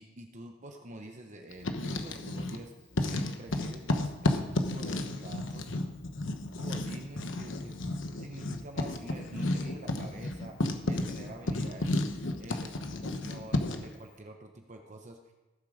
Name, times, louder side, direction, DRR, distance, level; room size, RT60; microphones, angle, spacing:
voice 1, 0.0-5.7 6.6-10.6 10.8-12.0 12.4-15.3, right 1 dB, 40° right, 3 dB, 1.0 m, -47 dB
Writing, 1.5-2.6 2.9-13.9, left 2 dB, 75° left, 1.1 m, -32 dB
17.5 x 7.5 x 5.0 m, 1.1 s
head